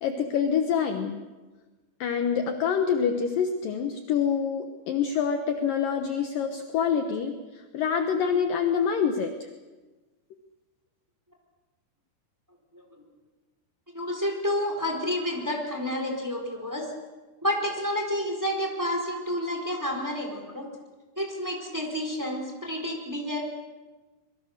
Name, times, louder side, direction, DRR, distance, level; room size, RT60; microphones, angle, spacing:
voice 1, 0.0-1.2 2.0-9.5, left 7 dB, 65° left, 6 dB, 2.4 m, -26 dB
voice 2, 13.9-16.9 17.4-20.7 21.2-23.4, left 1 dB, 5° right, 2 dB, 3.8 m, -30 dB
26.0 x 23.0 x 6.7 m, 1.2 s
omnidirectional pair, 4.9 m